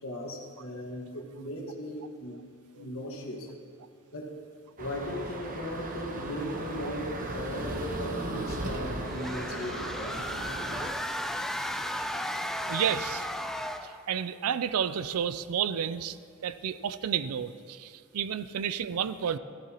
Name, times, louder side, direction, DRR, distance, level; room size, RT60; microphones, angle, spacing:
voice 1, 0.0-2.4 2.7-3.5 4.1-4.3 4.8-10.3, equal, 65° left, 0 dB, 1.6 m, -38 dB
sound 1, 4.8-10.9, right 1 dB, 40° right, 0.9 m, -36 dB
sound 2, 9.1-14.0, equal, ahead, 0.4 m, -34 dB
voice 2, 12.7-13.3 14.1-16.2 16.4-19.4, right 8 dB, 80° right, 14 dB, 0.4 m, -31 dB
14.5 x 14.0 x 2.9 m, 2.3 s
head